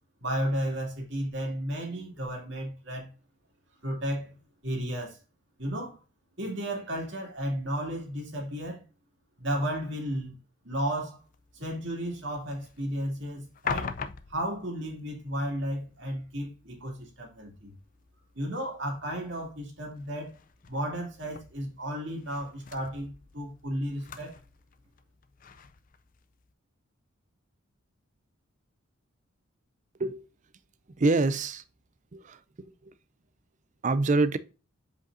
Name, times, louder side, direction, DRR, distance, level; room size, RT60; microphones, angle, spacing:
voice 1, 0.2-3.1 3.8-5.2 5.6-6.0 6.4-8.8 9.4-10.4 10.6-11.2 11.5-13.9 14.3-17.7 18.3-20.3 20.7-24.3, equal, 55° right, 2.5 m, -33 dB
sound 1, 11.2-26.5, left 6 dB, 40° left, 0.4 m, -44 dB
voice 2, 31.0-31.6 32.1-32.9 33.8-34.4, right 3 dB, 35° right, 0.4 m, -26 dB
7.3 x 5.2 x 2.6 m
head